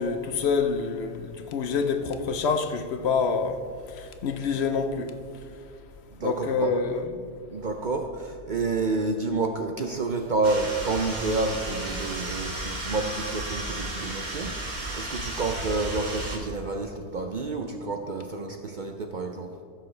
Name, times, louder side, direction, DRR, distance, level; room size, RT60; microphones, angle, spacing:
voice 1, 0.0-3.6 4.2-5.1 6.2-6.9 7.2-7.3, left 5 dB, 65° left, 0.8 m, -26 dB
voice 2, 6.2-6.8 7.5-14.6 14.9-19.5, right 3 dB, 55° right, 0.6 m, -29 dB
sound 1, 10.4-16.4, right 1 dB, 40° right, 1.2 m, -33 dB
15.0 x 6.5 x 3.2 m
omnidirectional pair, 1.3 m